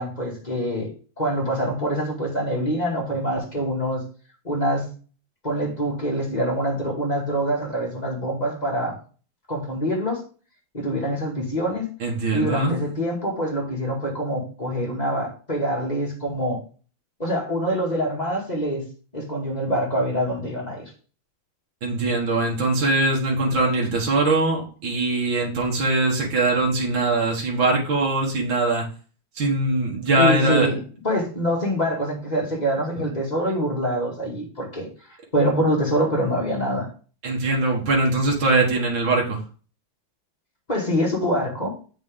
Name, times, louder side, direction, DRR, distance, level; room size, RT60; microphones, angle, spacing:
voice 1, 0.0-4.0 4.4-4.9 5.4-9.0 9.5-10.2 10.7-11.9 12.3-16.6 17.2-18.8 19.1-20.9 30.2-34.9 35.3-36.9 40.7-41.8, equal, 20° left, -2 dB, 2.2 m, -25 dB
voice 2, 12.0-12.8 21.8-28.9 29.4-30.7 37.2-39.4, right 2 dB, 85° right, -2 dB, 2.4 m, -22 dB
8.2 x 5.2 x 3.7 m, 0.38 s
omnidirectional pair, 2.1 m